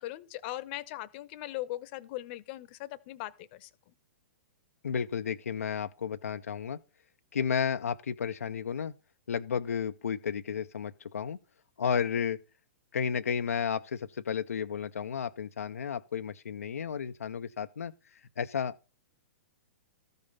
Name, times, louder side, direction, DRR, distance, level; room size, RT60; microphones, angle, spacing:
voice 1, 0.0-3.7, left 16 dB, 45° left, 0.8 m, -39 dB
voice 2, 4.8-6.8 7.3-8.9 9.3-11.4 11.8-12.4 12.9-17.9 18.4-18.9, left 7 dB, 85° left, 0.5 m, -32 dB
13.5 x 5.3 x 5.4 m
hypercardioid pair, 120°, 8 cm